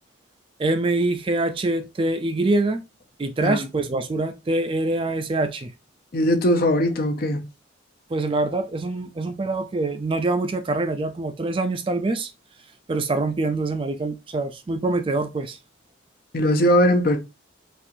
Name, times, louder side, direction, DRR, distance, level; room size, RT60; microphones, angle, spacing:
voice 1, 0.6-2.8 3.2-5.7 8.1-12.3 12.9-15.6, right 2 dB, 25° right, 0.3 m, -24 dB
voice 2, 6.1-7.4 16.3-17.2, equal, 50° left, 0.6 m, -20 dB
4.3 x 2.4 x 2.6 m
head